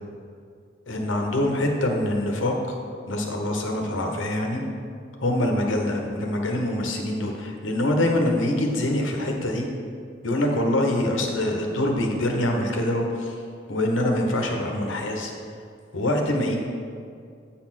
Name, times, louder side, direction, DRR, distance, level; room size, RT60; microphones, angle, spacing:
voice 1, 0.9-2.8 3.1-4.6 5.2-9.7 10.2-13.3 13.7-15.3 15.9-16.6, left 1 dB, 85° left, 2 dB, 1.1 m, -24 dB
8.2 x 4.3 x 5.9 m, 2.3 s
head